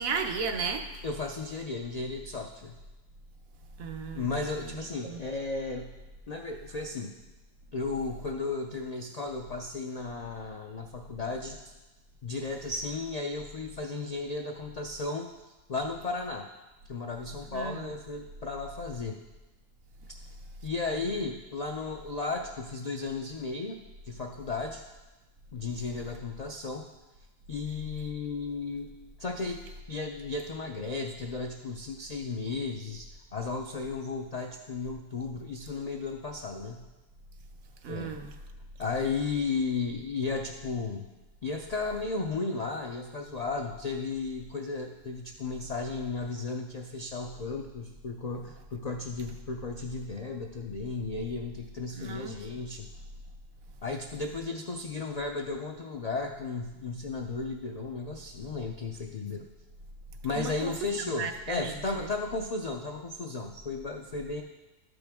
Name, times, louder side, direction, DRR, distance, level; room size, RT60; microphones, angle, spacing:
voice 1, 0.0-0.9 3.8-4.3 4.6-5.2 17.5-17.9 20.9-21.0 37.8-38.3 51.9-52.4 60.4-61.7 62.0-62.1, right 5 dB, 90° right, 5 dB, 1.2 m, -35 dB
voice 2, 1.0-2.8 4.1-5.9 6.3-7.2 7.7-11.6 12.2-15.3 15.7-16.5 16.9-19.2 20.6-23.8 24.1-24.8 25.5-26.9 27.5-28.9 29.2-36.9 37.9-38.2 38.8-41.1 41.4-52.9 53.8-59.5 60.2-64.4, left 3 dB, 70° left, 2 dB, 0.3 m, -34 dB
12.5 x 5.3 x 3.5 m, 1.1 s
omnidirectional pair, 1.4 m